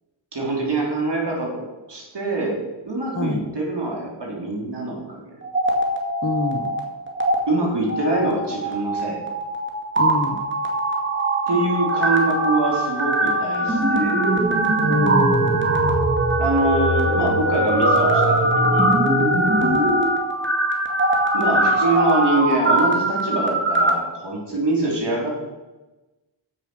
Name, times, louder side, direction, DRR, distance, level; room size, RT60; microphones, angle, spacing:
voice 1, 0.3-1.6 1.9-2.6 2.9-5.4 7.5-9.2 11.5-14.2 16.4-18.9 21.3-25.3, right 2 dB, 60° right, -2 dB, 3.6 m, -24 dB
sound 1, 5.4-6.8 7.1-7.3 7.9-23.9, right 1 dB, 25° right, 2.1 m, -21 dB
voice 2, 6.2-6.7 10.0-10.4 14.8-15.8 19.5-19.8, left 3 dB, 30° left, 7 dB, 1.0 m, -26 dB
7.4 x 7.0 x 6.3 m, 1.1 s
cardioid pair, 50°, 47 cm